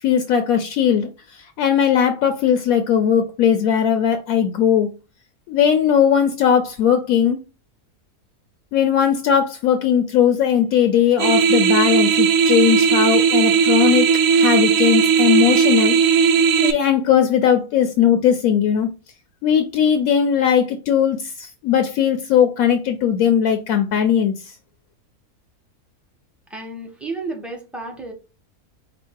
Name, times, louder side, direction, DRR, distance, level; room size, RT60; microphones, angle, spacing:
voice 1, 0.0-4.9 5.5-7.4 8.7-14.1 14.3-16.0 16.6-18.9 19.4-24.3, left 8 dB, 75° left, 1.0 m, -18 dB
sound 1, 11.2-16.7, right 6 dB, 70° right, 0.9 m, -16 dB
voice 2, 26.5-28.1, right 3 dB, ahead, 0.7 m, -32 dB
5.0 x 2.0 x 4.5 m
omnidirectional pair, 1.6 m